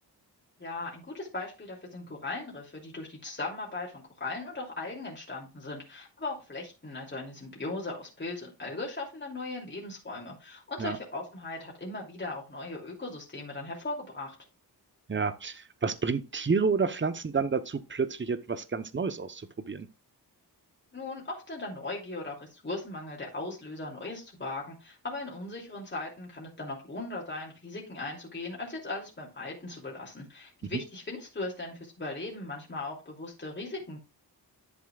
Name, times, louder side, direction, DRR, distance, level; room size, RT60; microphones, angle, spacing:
voice 1, 0.6-14.3 20.9-34.0, left 2 dB, 25° left, 2.8 m, -38 dB
voice 2, 15.1-19.9 30.6-30.8, right 5 dB, 30° right, 0.9 m, -30 dB
11.0 x 7.6 x 2.4 m
wide cardioid pair, 105°, 40 cm